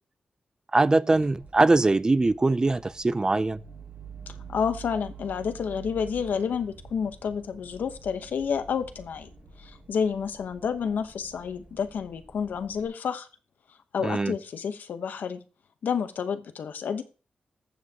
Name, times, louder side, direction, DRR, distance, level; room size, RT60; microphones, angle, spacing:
voice 1, 0.7-3.6 14.0-14.3, right 2 dB, 25° right, 0.4 m, -22 dB
sound 1, 1.1-12.9, right 5 dB, 70° right, 4.4 m, -47 dB
voice 2, 4.5-9.3 9.6-13.3 13.9-15.4 15.8-17.0, left 6 dB, 90° left, 0.9 m, -30 dB
14.0 x 7.4 x 2.9 m
wide cardioid pair, 100°, 3 cm